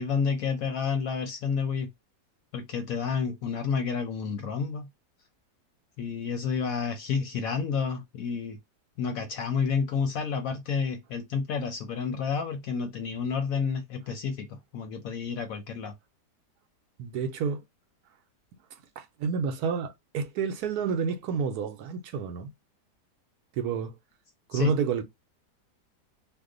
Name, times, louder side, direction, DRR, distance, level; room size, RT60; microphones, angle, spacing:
voice 1, 0.0-1.9 2.5-4.9 6.0-8.6 9.0-15.9 24.5-24.7, left 5 dB, 70° left, 0.9 m, -30 dB
voice 2, 17.0-17.6 19.0-22.5 23.6-23.9 24.5-25.0, right 6 dB, 70° right, 1.1 m, -29 dB
2.9 x 2.1 x 3.7 m
omnidirectional pair, 1.8 m